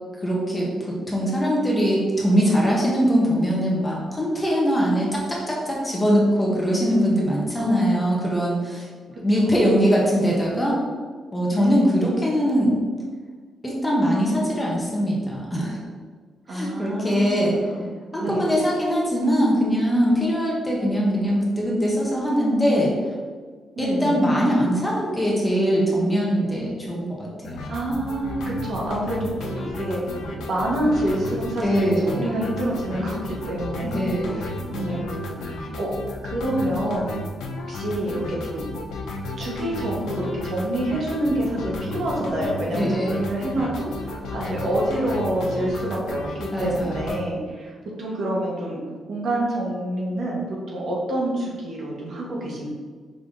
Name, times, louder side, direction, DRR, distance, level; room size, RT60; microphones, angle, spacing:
voice 1, 0.2-8.9 9.2-10.8 11.3-12.8 13.6-15.8 16.5-17.6 18.1-22.9 23.8-27.6 31.6-32.3 33.8-34.4 42.7-43.2 46.5-47.2, equal, 10° left, -4 dB, 0.7 m, -22 dB
voice 2, 7.6-8.3 9.7-10.1 11.5-12.1 16.5-17.9 18.2-18.5 23.8-24.3 27.7-30.2 30.5-35.9 36.2-37.1 37.7-38.6 39.4-48.8 49.1-52.7, right 1 dB, 50° right, -3 dB, 1.1 m, -27 dB
sound 1, 27.4-47.2, left 2 dB, 90° left, 0.5 m, -33 dB
5.0 x 2.7 x 3.6 m, 1.6 s
wide cardioid pair, 175°, 0 cm